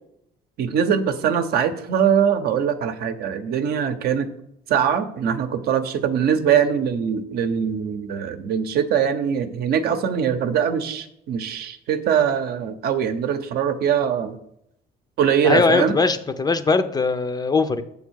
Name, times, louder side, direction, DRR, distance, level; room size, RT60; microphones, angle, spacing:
voice 1, 0.6-4.3 4.7-14.4 15.2-16.0, right 8 dB, 65° right, 8 dB, 0.8 m, -22 dB
voice 2, 15.4-17.8, left 4 dB, 25° left, 10 dB, 0.5 m, -20 dB
7.1 x 3.5 x 6.3 m, 0.76 s
cardioid pair, 110°, 17 cm